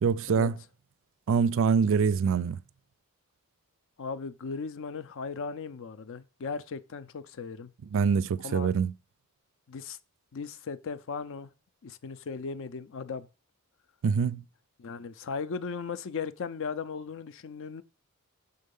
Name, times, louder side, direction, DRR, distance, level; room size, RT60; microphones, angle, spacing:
voice 1, 0.0-0.6 1.3-2.6 7.9-8.9 14.0-14.4, right 6 dB, 60° right, 0.4 m, -24 dB
voice 2, 4.0-7.7 8.4-8.7 9.7-10.0 10.3-11.5 11.8-13.3 14.8-17.8, left 5 dB, 60° left, 0.5 m, -37 dB
6.4 x 3.9 x 5.3 m
head